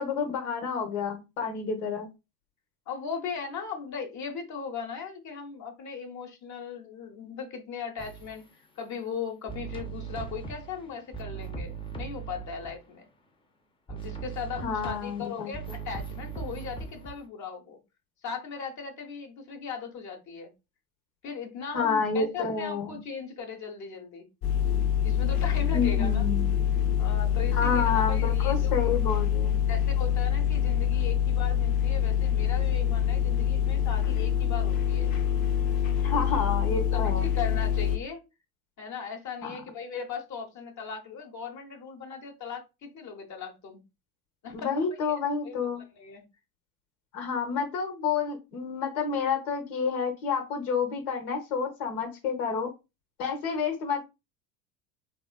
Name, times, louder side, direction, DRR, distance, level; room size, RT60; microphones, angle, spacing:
voice 1, 0.0-2.1 14.6-15.5 21.7-23.0 25.7-26.6 27.5-29.6 36.0-37.3 39.4-39.6 44.5-45.8 47.1-52.7 53.2-54.1, left 5 dB, 75° left, 1.1 m, -29 dB
voice 2, 2.9-8.4 8.8-13.0 13.9-17.8 18.2-20.5 21.2-24.3 25.0-26.2 27.0-28.7 29.7-35.1 36.1-36.2 36.9-38.2 38.8-43.8 44.4-44.7 45.0-45.1 45.4-45.7 45.9-46.2, left 6 dB, 40° left, 1.0 m, -38 dB
sound 1, 8.0-8.4 9.5-12.8 13.9-17.2, right 5 dB, 10° left, 0.5 m, -39 dB
sound 2, 24.4-38.0, left 9 dB, 55° left, 0.7 m, -25 dB
3.6 x 2.4 x 2.2 m
hypercardioid pair, 75°, 43 cm